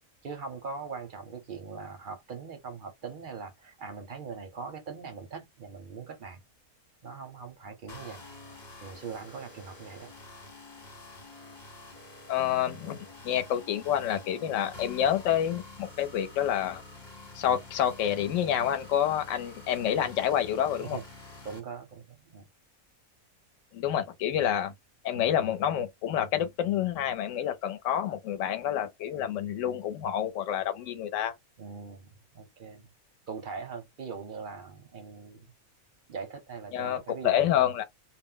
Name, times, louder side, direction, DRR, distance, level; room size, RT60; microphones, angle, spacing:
voice 1, 0.2-6.4 7.0-8.2 8.8-10.1 20.8-21.0 21.4-22.5 31.6-32.1 32.3-32.9 33.3-35.5 36.1-37.5, right 5 dB, 50° right, 0.7 m, -41 dB
sound 1, 7.9-21.6, left 3 dB, 35° left, 1.1 m, -48 dB
voice 2, 12.3-16.8 17.3-21.0 23.7-24.7 25.0-31.3 36.7-37.8, left 10 dB, 65° left, 0.9 m, -28 dB
2.5 x 2.1 x 3.7 m
omnidirectional pair, 1.5 m